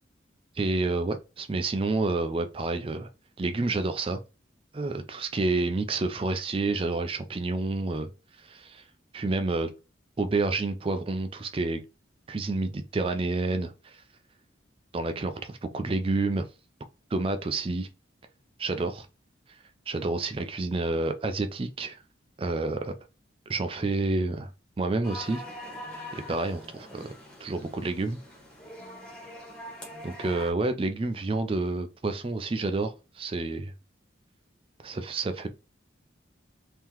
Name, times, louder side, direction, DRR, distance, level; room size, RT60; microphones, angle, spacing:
voice 1, 0.6-3.1 3.4-4.2 4.7-8.1 8.4-8.8 9.1-9.7 10.2-11.8 12.3-14.0 14.9-16.5 17.1-17.9 18.6-19.1 19.9-22.0 22.4-22.9 23.5-24.5 24.8-25.4 26.1-27.1 27.4-28.2 30.0-33.7 34.8-35.5, right 3 dB, 30° right, 0.4 m, -29 dB
sound 1, 25.0-30.5, left 1 dB, 5° left, 1.1 m, -43 dB
3.7 x 2.8 x 3.0 m
head